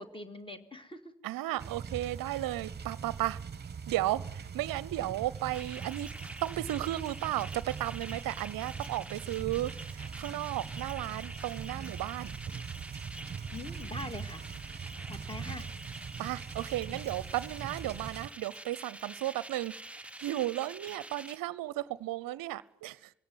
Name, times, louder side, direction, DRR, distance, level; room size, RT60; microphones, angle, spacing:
voice 1, 0.0-1.2 10.6-10.7 13.5-14.5 15.1-15.7, left 2 dB, 15° left, 2.2 m, -43 dB
voice 2, 1.2-3.4 3.9-6.1 6.4-12.4 16.2-23.1, right 15 dB, 60° right, 0.8 m, -34 dB
sound 1, 1.6-18.3, right 6 dB, 25° right, 1.3 m, -42 dB
sound 2, 5.4-21.4, right 1 dB, 5° right, 0.9 m, -47 dB
21.5 x 17.0 x 9.4 m
hypercardioid pair, 45°, 39 cm